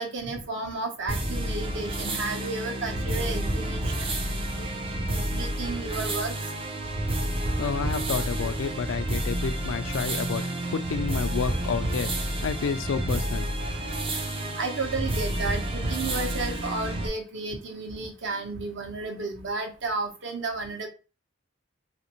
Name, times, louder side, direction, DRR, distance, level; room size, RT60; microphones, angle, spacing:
voice 1, 0.0-4.1 4.3-4.7 5.1-6.3 14.6-20.9, right 3 dB, 60° right, 0.8 m, -33 dB
sound 1, 1.1-17.1, right 1 dB, 25° right, 0.4 m, -30 dB
voice 2, 7.6-10.4 10.7-12.1 12.4-13.5, left 6 dB, 70° left, 0.3 m, -30 dB
3.3 x 2.5 x 2.9 m
head